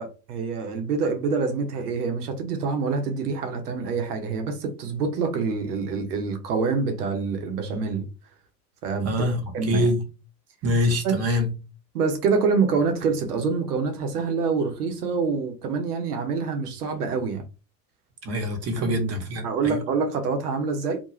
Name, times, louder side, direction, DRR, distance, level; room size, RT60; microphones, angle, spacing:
voice 1, 0.0-8.0 8.8-9.1 9.5-9.9 11.0-11.2 11.9-17.4 18.8-18.9 19.4-21.0, right 5 dB, 80° right, 0.8 m, -26 dB
voice 2, 9.0-10.0 10.6-11.5 18.2-19.8, left 1 dB, 35° right, 0.9 m, -25 dB
2.4 x 2.2 x 3.0 m
hypercardioid pair, 80°, 45 cm